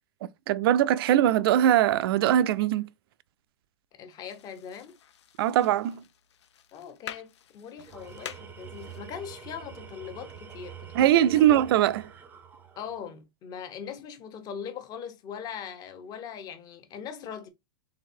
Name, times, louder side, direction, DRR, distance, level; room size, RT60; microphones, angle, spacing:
voice 1, 0.5-2.9 5.4-6.0 10.9-12.1, right 11 dB, 60° right, 0.4 m, -21 dB
voice 2, 3.9-5.0 6.7-11.4 12.8-17.5, left 8 dB, 25° left, 0.8 m, -41 dB
sound 1, 4.2-9.4, left 9 dB, 80° left, 0.6 m, -47 dB
Tools, 7.8-13.2, right 7 dB, 15° right, 0.6 m, -46 dB
4.0 x 3.4 x 2.6 m
hypercardioid pair, 135°, 14 cm